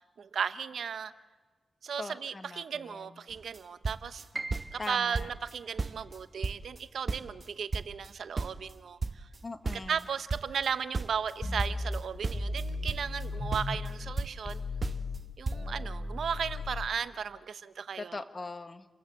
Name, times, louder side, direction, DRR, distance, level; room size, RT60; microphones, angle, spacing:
voice 1, 0.2-1.1 1.8-4.2 4.7-9.3 9.9-14.6 15.4-18.2, right 7 dB, 80° right, 12 dB, 0.9 m, -35 dB
voice 2, 2.0-3.2 4.8-5.3 9.4-10.1 18.0-18.9, left 3 dB, 40° left, 9 dB, 1.7 m, -41 dB
sound 1, 3.3-3.6 3.8-4.9 5.1-5.5 5.8-7.5 7.7-10.7 10.9-13.3 13.5-14.5 14.8-15.2 15.5-15.6, right 3 dB, 45° right, 1.2 m, -35 dB
Piano, 4.3-10.3 10.6-11.8 12.2-12.3 13.0-13.3, right 2 dB, 25° right, 1.7 m, -47 dB
sound 2, 11.4-14.1 14.4-16.9, left 2 dB, 25° left, 2.8 m, -36 dB
29.0 x 16.0 x 8.0 m, 1.3 s
cardioid pair, 55°, 0 cm